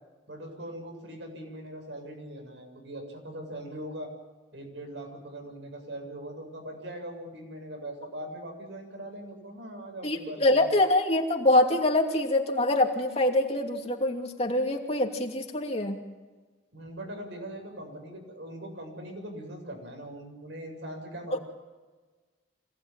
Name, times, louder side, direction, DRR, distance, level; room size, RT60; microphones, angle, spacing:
voice 1, 0.3-4.1 4.5-10.7 16.7-21.4, right 1 dB, 75° right, 3 dB, 7.7 m, -41 dB
voice 2, 10.0-16.0 21.3-21.4, left 1 dB, 35° left, 2 dB, 2.8 m, -25 dB
26.0 x 18.5 x 9.1 m, 1.3 s
head